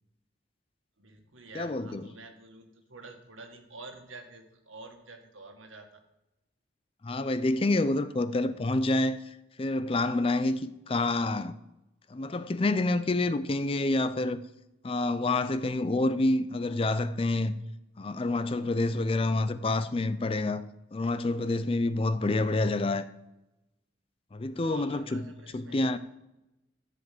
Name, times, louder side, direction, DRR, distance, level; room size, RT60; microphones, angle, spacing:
voice 1, 1.0-5.9 24.5-26.0, right 3 dB, 80° right, 1.8 m, -48 dB
voice 2, 1.5-2.0 7.0-11.6 12.1-14.4 14.8-17.6 18.0-20.6 20.9-23.1 24.3-25.2 25.5-26.0, left 2 dB, 25° left, 0.4 m, -28 dB
13.5 x 5.1 x 7.7 m
head